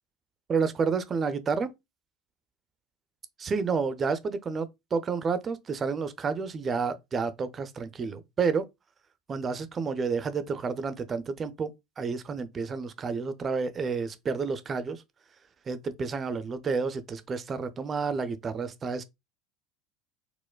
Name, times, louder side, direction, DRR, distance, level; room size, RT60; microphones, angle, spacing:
voice 1, 0.5-1.7 3.4-8.7 9.3-11.7 12.0-15.0 15.7-19.0, right 5 dB, 30° right, 0.4 m, -30 dB
4.3 x 2.1 x 2.2 m
figure-of-eight pair, 70°, 0 cm